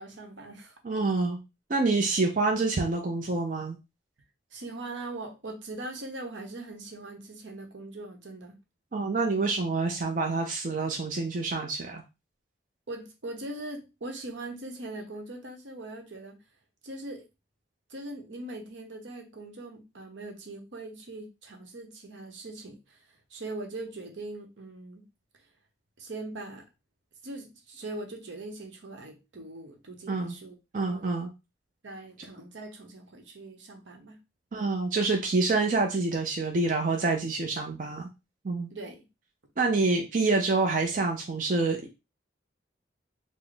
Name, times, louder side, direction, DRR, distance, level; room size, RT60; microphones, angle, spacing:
voice 1, 0.0-0.8 4.5-8.6 12.9-16.4 16.8-17.2 17.9-25.0 26.0-26.6 27.2-30.5 30.8-31.1 31.8-34.2 38.7-39.0, right 2 dB, 75° right, 3 dB, 0.8 m, -41 dB
voice 2, 0.8-1.4 1.7-3.8 8.9-12.0 30.1-30.3 30.7-31.3 34.5-38.1 38.4-38.7 39.6-41.9, right 3 dB, 45° right, 2 dB, 0.5 m, -27 dB
3.9 x 2.0 x 3.3 m, 0.26 s
head